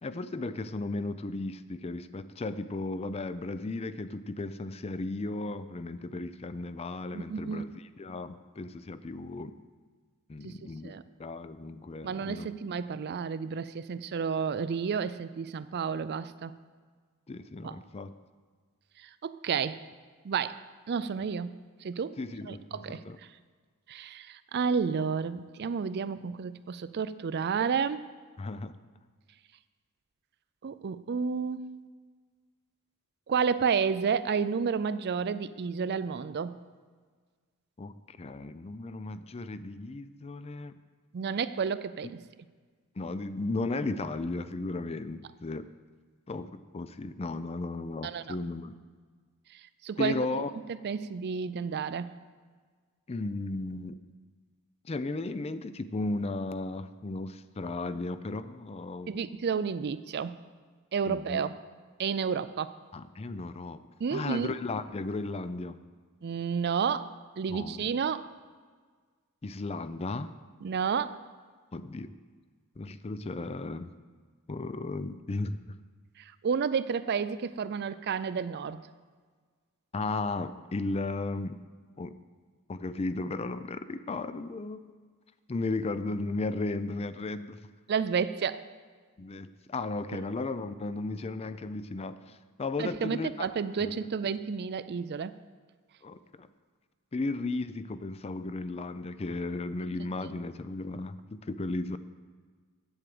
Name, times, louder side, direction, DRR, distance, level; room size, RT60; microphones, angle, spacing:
voice 1, 0.0-7.7 8.0-9.5 10.3-10.9 11.2-12.5 17.3-18.1 22.2-23.2 28.4-28.8 37.8-40.7 43.0-45.7 46.3-48.7 50.0-50.5 53.1-54.0 54.8-59.1 61.1-61.4 62.9-63.8 64.1-65.8 67.5-67.8 69.4-70.3 71.7-72.1 72.8-73.9 74.5-75.6 79.9-81.6 82.0-82.1 82.7-84.8 85.5-87.6 89.2-93.5 93.8-93.9 96.0-96.5 97.1-102.0, left 2 dB, 25° left, 13 dB, 0.4 m, -35 dB
voice 2, 7.1-7.7 10.4-10.5 10.8-11.0 12.0-16.5 17.6-17.8 19.0-19.8 20.2-21.5 21.8-22.2 22.5-23.0 23.9-28.1 30.6-31.6 33.3-36.6 41.1-42.2 48.0-48.4 49.5-50.2 50.8-52.1 59.1-60.3 60.9-61.5 62.0-62.7 64.0-64.6 66.2-68.3 70.6-71.2 76.2-78.8 87.9-88.7 92.8-95.3, right 6 dB, 50° right, 14 dB, 0.4 m, -31 dB
8.8 x 7.9 x 7.8 m, 1.5 s
head